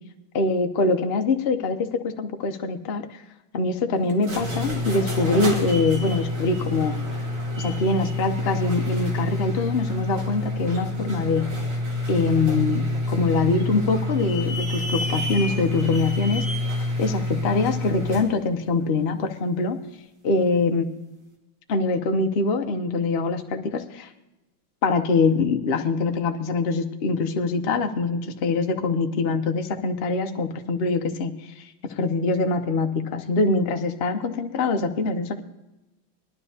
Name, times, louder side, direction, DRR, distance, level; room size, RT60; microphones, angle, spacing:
voice 1, 0.3-3.2 3.5-7.0 7.6-11.5 12.1-16.7 17.0-19.8 20.2-20.8 21.7-24.1 24.8-35.4, left 3 dB, 65° left, 5 dB, 0.6 m, -24 dB
sound 1, 4.1-18.3, left 1 dB, 55° right, 2.9 m, -27 dB
19.5 x 12.0 x 2.8 m, 0.97 s
omnidirectional pair, 2.2 m